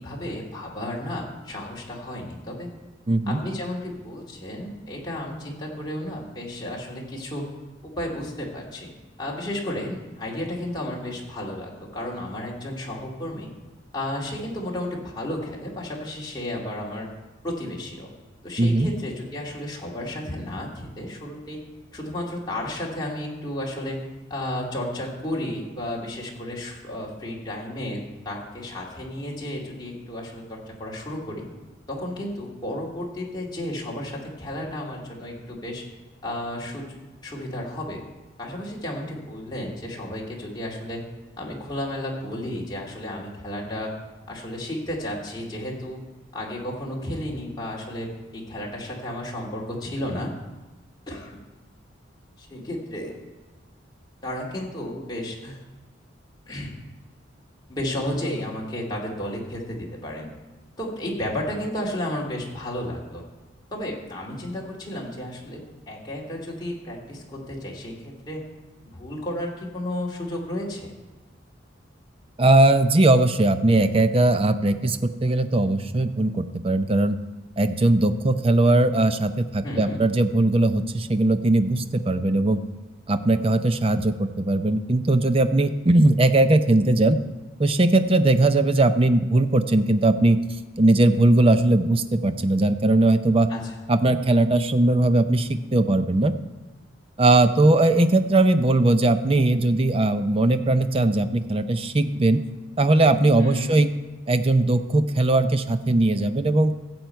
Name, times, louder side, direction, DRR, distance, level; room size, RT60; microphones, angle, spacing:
voice 1, 0.0-2.7 3.3-7.5 7.8-8.9 9.2-13.5 13.9-17.1 17.4-18.1 18.4-21.6 21.9-31.5 31.9-35.8 36.2-37.0 37.2-38.0 38.4-41.0 41.4-43.9 44.3-46.0 46.3-48.1 48.3-50.3 51.1-51.3 52.4-53.2 54.2-55.6 56.5-56.8 57.7-60.3 60.8-63.2 63.7-65.6 65.9-68.4 68.9-70.9 79.6-80.0 93.5-93.8 103.4-103.8, left 1 dB, 20° left, -4 dB, 2.3 m, -33 dB
voice 2, 3.1-3.4 18.6-18.9 72.4-77.2 77.6-82.6 83.1-87.2 87.6-90.4 90.8-93.5 93.9-96.3 97.2-102.4 102.8-103.9 104.3-106.7, right 2 dB, 30° right, 10 dB, 0.6 m, -19 dB
15.0 x 8.0 x 4.5 m, 1.2 s
head